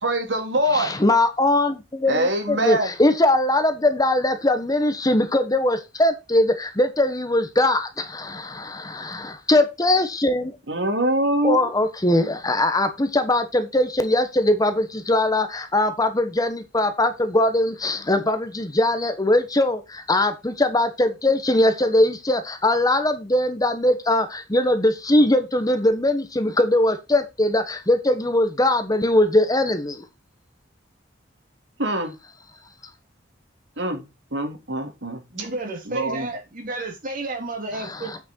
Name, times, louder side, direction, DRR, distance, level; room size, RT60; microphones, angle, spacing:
voice 1, 0.0-0.9 2.1-2.9 10.7-11.7 31.8-32.1 33.8-35.2 35.9-36.3, right 1 dB, 75° right, 3.0 m, -24 dB
voice 2, 0.7-10.6 11.4-30.0 37.8-38.2, left 1 dB, 20° left, 1.2 m, -21 dB
voice 3, 35.3-38.1, right 2 dB, 50° right, 3.2 m, -31 dB
8.9 x 6.1 x 4.5 m
head